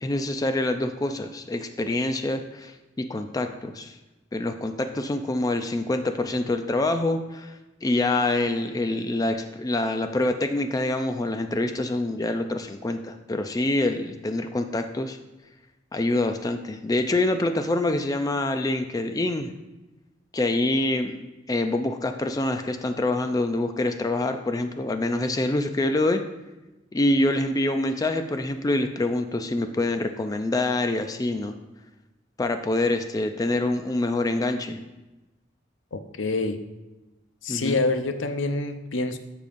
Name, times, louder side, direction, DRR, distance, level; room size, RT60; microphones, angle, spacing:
voice 1, 0.0-4.0 4.3-7.5 7.8-15.2 15.9-19.5 20.3-26.2 26.9-31.5 32.4-34.8 37.5-37.8, left 2 dB, 20° left, 7 dB, 0.4 m, -26 dB
voice 2, 35.9-36.6 37.4-39.2, left 3 dB, 90° left, 8 dB, 0.6 m, -26 dB
13.0 x 5.2 x 2.6 m, 1.1 s
head